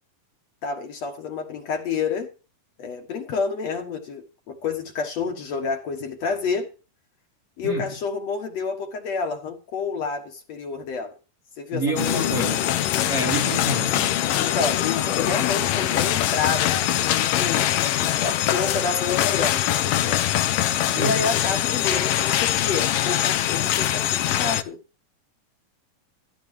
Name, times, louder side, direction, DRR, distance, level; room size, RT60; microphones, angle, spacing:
voice 1, 0.6-2.3 2.8-6.7 7.6-11.1 11.6-12.5 14.4-17.7 18.2-20.3 21.0-24.8, left 5 dB, 60° left, 2.3 m, -29 dB
voice 2, 11.7-12.6 13.1-14.2 20.9-21.2, right 1 dB, 25° right, 2.2 m, -28 dB
sound 1, 12.0-24.6, left 12 dB, 90° left, 2.6 m, -23 dB
14.5 x 14.0 x 3.3 m
omnidirectional pair, 3.8 m